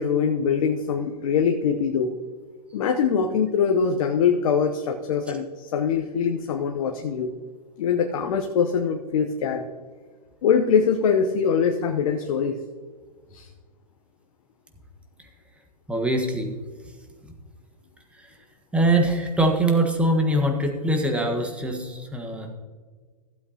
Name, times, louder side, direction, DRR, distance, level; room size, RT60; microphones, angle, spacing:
voice 1, 0.0-2.1 2.7-7.3 7.8-9.6 10.4-12.6 13.3-13.5, left 6 dB, 60° left, 4 dB, 0.9 m, -23 dB
voice 2, 15.9-16.5 18.7-22.5, right 1 dB, 5° right, 2 dB, 1.4 m, -23 dB
15.0 x 8.0 x 2.9 m, 1.5 s
hypercardioid pair, 120°, 20 cm